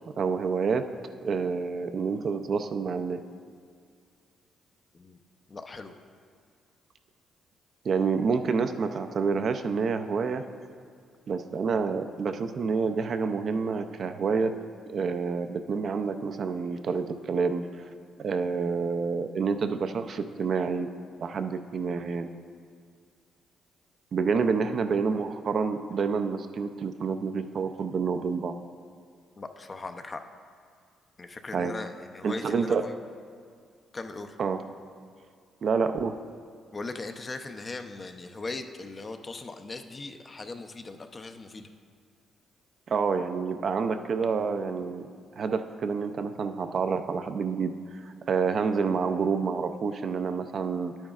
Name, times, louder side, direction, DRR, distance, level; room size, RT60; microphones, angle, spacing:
voice 1, 0.2-0.8 1.2-3.2 7.8-10.4 11.3-14.5 14.9-17.9 18.2-20.9 21.2-22.3 24.1-28.5 31.5-31.7 32.2-32.9 34.4-34.6 35.6-36.2 42.9-45.0 45.4-47.7 48.0-50.9, right 5 dB, 55° right, 8 dB, 0.4 m, -28 dB
voice 2, 5.5-6.0 29.3-30.2 31.2-32.9 33.9-34.4 36.7-41.7, left 3 dB, 30° left, 7 dB, 0.5 m, -39 dB
10.0 x 8.8 x 2.4 m, 2.1 s
cardioid pair, 90°, 0 cm